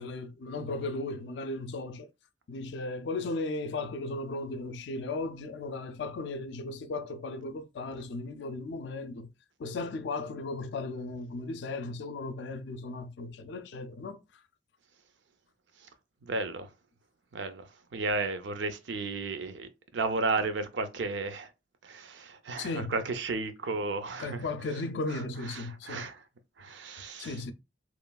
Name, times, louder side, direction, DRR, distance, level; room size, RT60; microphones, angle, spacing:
voice 1, 0.0-2.1 2.5-9.3 9.6-14.2 22.6-23.0 24.2-26.1 27.2-27.5, left 3 dB, 70° left, 0.4 m, -36 dB
voice 2, 16.2-16.7 17.3-21.5 21.8-24.5 25.1-26.2 26.6-27.4, right 3 dB, 75° right, 0.5 m, -34 dB
3.0 x 2.3 x 2.2 m
head